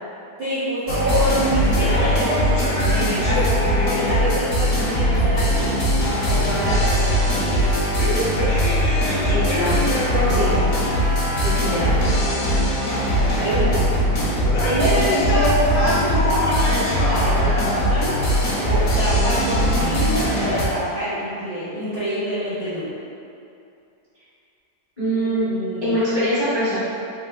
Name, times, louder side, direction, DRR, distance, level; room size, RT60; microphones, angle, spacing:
voice 1, 0.4-3.5 3.8-5.7 6.3-7.6 9.3-9.8 10.2-10.5 11.2-11.3 11.7-12.0 13.4-14.0 14.6-18.2 18.6-22.9 25.1-26.0, equal, 60° right, -11 dB, 0.6 m, -26 dB
sound 1, 0.9-20.7, equal, 60° left, 0.8 m, -20 dB
voice 2, 9.3-9.7 10.3-10.7 11.4-12.0 25.0-25.4 25.8-26.8, equal, 40° left, -12 dB, 0.4 m, -23 dB
3.6 x 2.8 x 2.3 m, 2.6 s
omnidirectional pair, 1.8 m